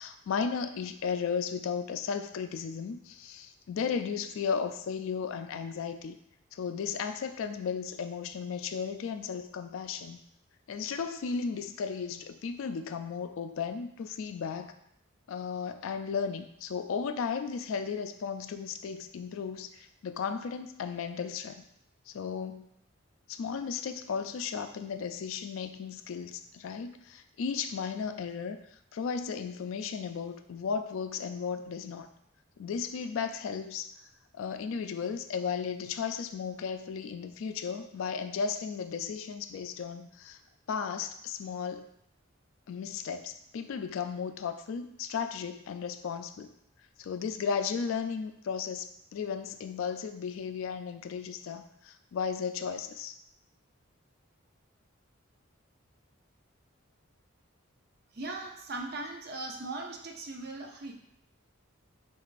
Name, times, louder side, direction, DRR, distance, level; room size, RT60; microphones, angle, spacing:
voice 1, 0.0-6.2 6.5-10.2 10.7-14.7 15.3-21.6 22.1-22.7 23.3-28.6 28.9-32.1 32.6-33.9 34.3-40.4 40.7-41.9 42.7-46.5 47.0-53.2, left 6 dB, 70° left, 8 dB, 0.3 m, -35 dB
voice 2, 58.1-60.9, right 2 dB, 50° right, 2 dB, 0.5 m, -39 dB
6.0 x 2.4 x 2.5 m, 0.76 s
head